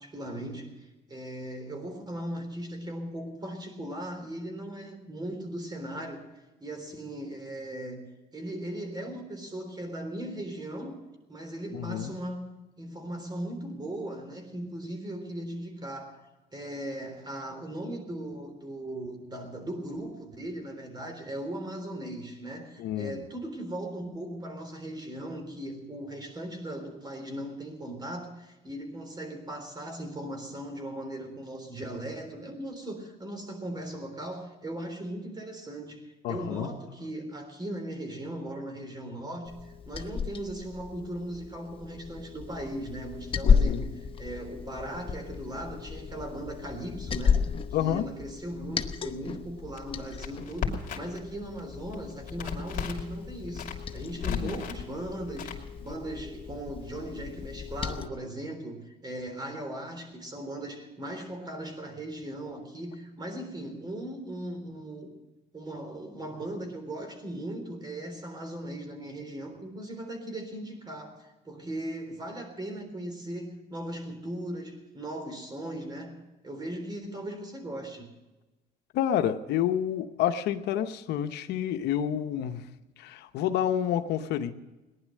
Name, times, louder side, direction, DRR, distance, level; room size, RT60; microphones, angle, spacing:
voice 1, 0.0-6.2 6.6-8.0 8.3-11.0 11.3-12.5 12.8-16.3 16.5-65.2 65.5-78.1, right 1 dB, 25° right, 3.6 m, -38 dB
voice 2, 11.7-12.1 22.8-23.2 36.2-36.8 43.4-43.8 47.7-48.1 54.3-54.6 78.9-82.7 83.0-84.5, left 10 dB, 80° left, 0.9 m, -29 dB
Liquid, 39.5-58.1, left 6 dB, 35° left, 0.8 m, -33 dB
Crackle, 49.8-51.3 51.5-53.1 53.5-54.8 55.3-56.0, left 7 dB, 50° left, 2.9 m, -35 dB
18.5 x 11.0 x 6.4 m
cardioid pair, 110°, 17 cm